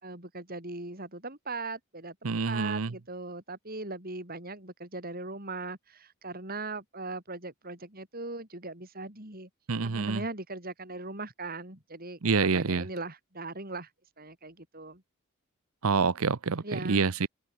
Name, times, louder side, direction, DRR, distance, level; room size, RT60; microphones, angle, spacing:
voice 1, 0.0-9.5 9.8-13.9 14.2-15.0 16.6-17.0, right 3 dB, 40° right, 6.5 m, -39 dB
voice 2, 2.2-2.9 9.7-10.2 12.2-12.9 15.8-17.3, right 5 dB, 70° right, 0.8 m, -27 dB
open air
head